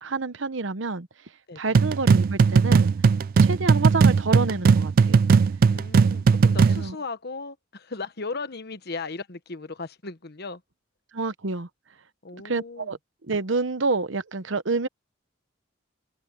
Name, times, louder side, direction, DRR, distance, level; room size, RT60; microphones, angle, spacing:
voice 1, 0.0-1.1 1.6-2.9 3.4-5.2 6.7-7.0 11.1-11.7 12.4-13.0 13.3-14.9, right 3 dB, 75° right, 1.0 m, -28 dB
sound 1, 1.7-6.9, right 5 dB, 50° right, 0.3 m, -18 dB
voice 2, 5.7-10.6 12.2-12.9, left 3 dB, 55° left, 1.3 m, -36 dB
head